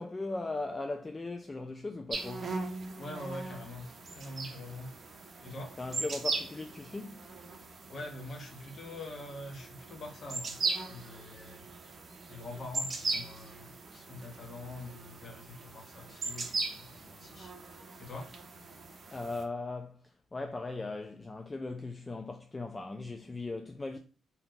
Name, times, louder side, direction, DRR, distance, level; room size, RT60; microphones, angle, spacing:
voice 1, 0.0-2.5 5.8-7.3 19.1-20.0 20.3-24.0, left 3 dB, 25° left, 0.3 m, -38 dB
sound 1, 2.1-19.4, right 3 dB, 40° right, 0.6 m, -39 dB
voice 2, 3.0-3.9 4.1-5.0 5.4-5.8 7.9-11.6 12.3-17.5 18.0-18.3, left 2 dB, 45° left, 0.9 m, -44 dB
2.8 x 2.2 x 3.7 m
cardioid pair, 90°, 0 cm